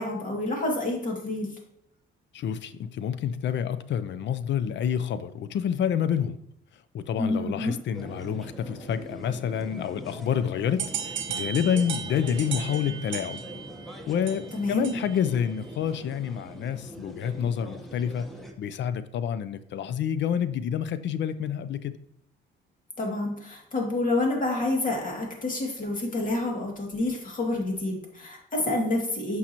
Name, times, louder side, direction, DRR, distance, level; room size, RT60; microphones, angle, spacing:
voice 1, 0.0-1.5 7.2-7.7 14.5-15.0 23.0-29.4, left 2 dB, 40° left, 0 dB, 2.4 m, -28 dB
voice 2, 2.3-6.4 6.9-13.4 14.1-18.3 18.6-22.0, left 8 dB, 65° left, 13 dB, 0.5 m, -28 dB
sound 1, 7.9-18.5, equal, ahead, 1.1 m, -42 dB
sound 2, 10.8-15.3, right 8 dB, 75° right, 0.8 m, -36 dB
8.6 x 5.5 x 3.0 m, 0.74 s
cardioid pair, 90°, 20 cm